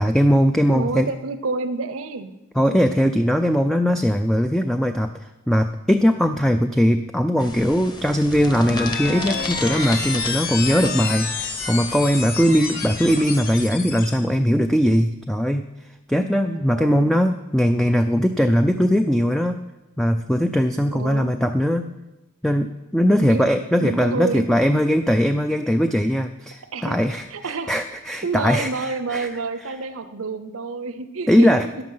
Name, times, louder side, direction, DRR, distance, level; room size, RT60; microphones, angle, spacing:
voice 1, 0.0-1.1 2.6-15.7 16.1-19.6 20.0-21.9 22.4-29.3 31.3-31.7, equal, ahead, 6 dB, 0.4 m, -20 dB
voice 2, 0.7-2.3 16.5-17.2 20.9-21.3 23.2-24.5 26.7-27.0 27.3-27.8 28.2-31.5, right 4 dB, 65° right, 10 dB, 0.7 m, -29 dB
sound 1, 7.4-13.6, left 2 dB, 20° left, 1.2 m, -36 dB
sound 2, 8.2-14.2, left 4 dB, 45° left, 2.4 m, -29 dB
14.0 x 10.5 x 5.6 m, 1.0 s
head